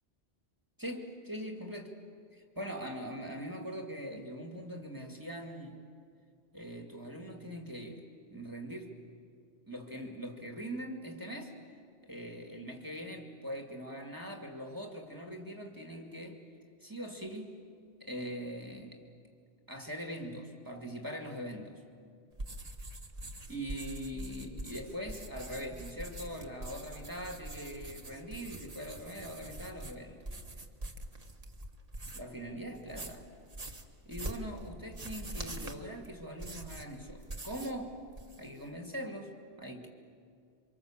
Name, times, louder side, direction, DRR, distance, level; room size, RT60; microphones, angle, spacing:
voice 1, 0.8-1.9 2.3-5.8 6.5-9.0 9.7-11.5 12.1-16.4 16.8-17.6 18.0-19.0 19.7-21.8 23.5-30.2 32.1-33.3 34.0-38.0 38.4-39.9, equal, 15° right, 2 dB, 2.2 m, -42 dB
sound 1, 22.3-32.4 32.7-37.8 38.1-38.6, right 1 dB, 30° right, 1.6 m, -44 dB
28.5 x 25.5 x 7.4 m, 2.2 s
omnidirectional pair, 1.2 m